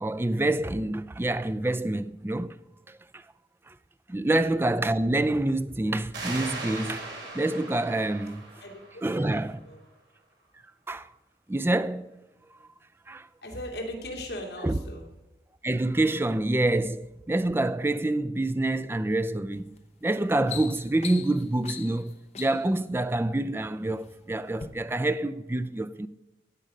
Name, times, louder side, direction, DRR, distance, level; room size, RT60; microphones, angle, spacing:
voice 1, 0.0-2.6 2.9-3.2 3.7-3.8 4.1-7.1 7.3-8.4 9.0-9.6 10.9-11.1 11.5-12.1 13.1-13.3 14.6-14.8 15.6-19.7 20.0-26.1, right 2 dB, 15° right, 0.3 m, -27 dB
sound 1, 6.1-9.5, right 2 dB, 85° right, 3.6 m, -39 dB
voice 2, 8.6-9.8 13.4-15.1, left 1 dB, 65° left, 2.7 m, -39 dB
sound 2, 19.5-19.8 20.2-22.8 23.6-24.1 24.5-24.7, left 7 dB, 35° left, 0.8 m, -41 dB
15.5 x 8.5 x 5.2 m
head